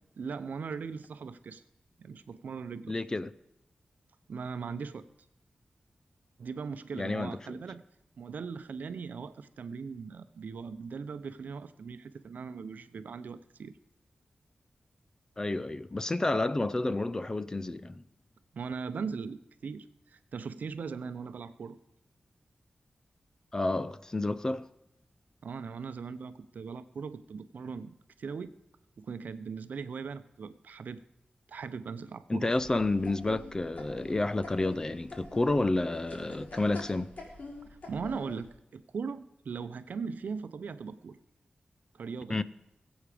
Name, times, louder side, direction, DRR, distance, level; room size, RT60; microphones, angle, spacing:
voice 1, 0.2-1.6 2.0-3.0 4.3-5.0 6.4-7.8 8.2-13.7 15.5-15.6 18.5-21.8 25.4-28.5 29.0-31.0 31.5-32.5 37.9-41.2 41.9-42.4, right 5 dB, 80° right, 0.7 m, -39 dB
voice 2, 2.9-3.3 6.9-7.6 15.4-18.0 23.5-24.7 32.3-37.1 42.3-42.4, left 2 dB, 25° left, 0.5 m, -30 dB
sound 1, 32.6-38.5, left 2 dB, 65° left, 3.6 m, -46 dB
20.5 x 8.1 x 5.1 m
wide cardioid pair, 150°, 3 cm